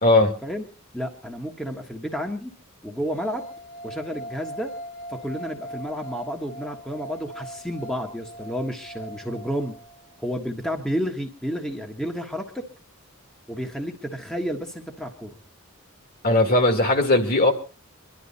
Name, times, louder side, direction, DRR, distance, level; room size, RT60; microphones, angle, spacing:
voice 1, 0.0-0.3 16.2-17.5, left 2 dB, 45° left, 6 dB, 2.4 m, -18 dB
voice 2, 0.9-2.5 2.8-3.5 3.8-4.7 5.1-9.8 10.2-12.7 13.5-15.3, equal, 5° left, 2 dB, 1.4 m, -31 dB
sound 1, 3.1-10.2, equal, 65° left, 3.2 m, -40 dB
24.5 x 11.5 x 4.1 m, 0.36 s
head